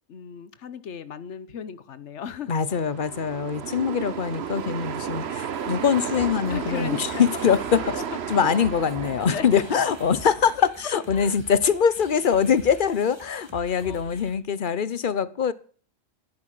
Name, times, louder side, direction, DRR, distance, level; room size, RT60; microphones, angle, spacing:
voice 1, 0.1-2.5 3.7-3.9 6.5-7.6 9.0-9.6 10.5-11.4 13.8-14.2, left 8 dB, 90° left, 1.2 m, -35 dB
voice 2, 2.5-7.8 8.3-10.6 10.8-15.5, left 7 dB, 50° left, 1.0 m, -23 dB
sound 1, 2.7-10.6, right 7 dB, 65° right, 1.2 m, -33 dB
sound 2, 5.5-14.4, right 2 dB, 25° right, 2.1 m, -47 dB
14.0 x 10.5 x 7.7 m
omnidirectional pair, 1.2 m